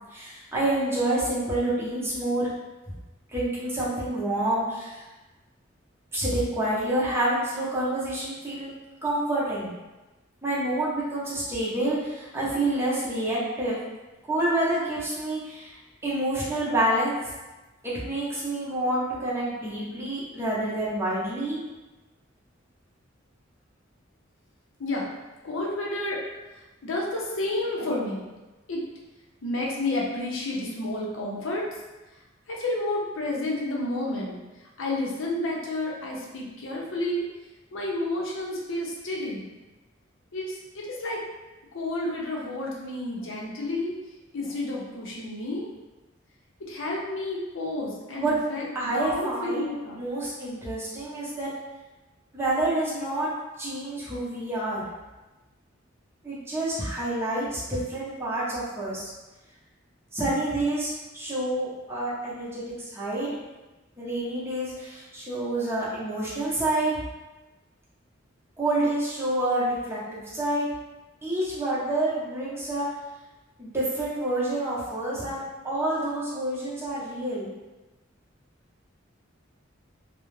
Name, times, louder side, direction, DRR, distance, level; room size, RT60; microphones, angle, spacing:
voice 1, 0.1-2.5 3.3-5.0 6.1-8.7 9.0-9.7 10.4-13.8 14.3-15.8 16.0-17.1 17.8-21.6 48.1-48.3 48.7-51.5 52.3-53.3 53.6-54.8 56.2-59.1 60.1-63.4 64.0-67.0 68.6-70.7 71.2-72.9 73.6-77.5, right 1 dB, 10° right, -8 dB, 0.7 m, -28 dB
voice 2, 25.4-26.2 26.8-28.2 28.7-28.8 29.4-31.7 32.5-34.4 34.8-37.2 37.7-39.5 40.3-41.2 41.7-43.9 44.3-45.7 46.7-50.0, left 2 dB, 70° left, -3 dB, 0.6 m, -30 dB
2.3 x 2.0 x 3.1 m, 1.1 s
head